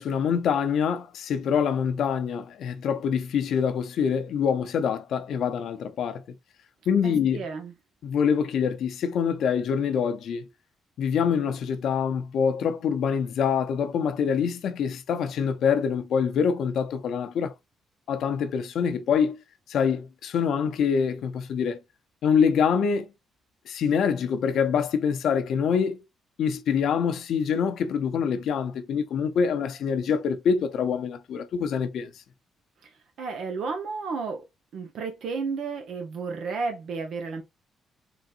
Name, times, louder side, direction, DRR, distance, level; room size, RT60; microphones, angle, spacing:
voice 1, 0.0-6.2 6.9-7.4 8.0-10.5 11.0-17.5 18.1-19.4 19.7-21.8 22.2-23.1 23.7-26.0 26.4-32.1, left 7 dB, 70° left, 0.6 m, -25 dB
voice 2, 7.0-7.7 33.2-34.4 34.7-37.4, right 4 dB, 70° right, 0.9 m, -32 dB
3.9 x 3.4 x 2.5 m
cardioid pair, 115°, 0 cm